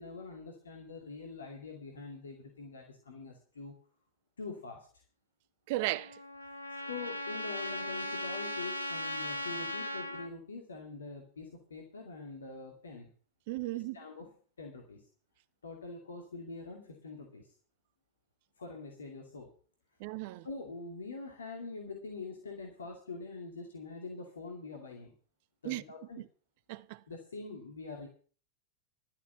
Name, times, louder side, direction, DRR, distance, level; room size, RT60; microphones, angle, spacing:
voice 1, 0.0-3.7 4.4-5.0 6.4-6.5 6.8-13.1 13.6-15.0 15.6-17.5 18.6-19.5 20.4-25.1 25.6-26.2 27.1-28.1, left 4 dB, 70° left, 2.4 m, -44 dB
voice 2, 5.7-6.2 13.5-14.0 20.0-20.5 25.6-25.8 26.2-26.3 26.7-27.0, right 17 dB, 50° right, 0.6 m, -35 dB
Trumpet, 5.8-10.3, left 1 dB, 90° left, 1.3 m, -38 dB
12.0 x 8.5 x 6.9 m
figure-of-eight pair, 90°, 0 cm